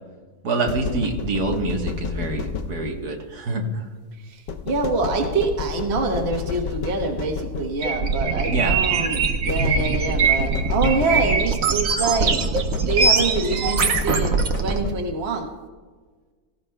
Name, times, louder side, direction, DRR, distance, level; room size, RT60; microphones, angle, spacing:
voice 1, 0.4-3.9 8.5-8.8, right 3 dB, 90° right, 1 dB, 1.9 m, -26 dB
sound 1, 0.7-3.1 4.5-8.1 9.5-11.7 12.3-15.3, left 6 dB, 80° left, 1.3 m, -30 dB
voice 2, 4.3-12.4 12.9-15.5, right 4 dB, 45° right, 3 dB, 1.4 m, -25 dB
sound 2, 7.8-14.8, right 4 dB, 65° right, 1.3 m, -22 dB
17.0 x 16.0 x 2.2 m, 1.4 s
omnidirectional pair, 1.6 m